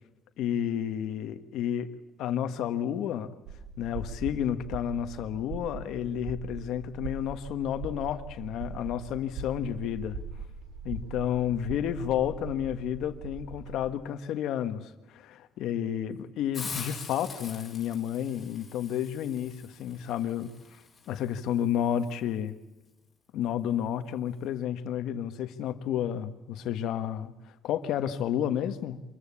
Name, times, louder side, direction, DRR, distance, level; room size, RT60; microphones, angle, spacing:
voice 1, 0.4-1.9 2.2-3.3 3.8-10.2 10.8-20.5 21.1-22.6 23.3-27.3 27.6-29.0, left 10 dB, 65° left, 1.4 m, -31 dB
sound 1, 3.5-13.9, right 5 dB, 85° right, 2.6 m, -41 dB
Hiss, 16.5-22.2, left 5 dB, 20° left, 4.4 m, -44 dB
25.5 x 14.5 x 8.6 m
cardioid pair, 175°, 0 cm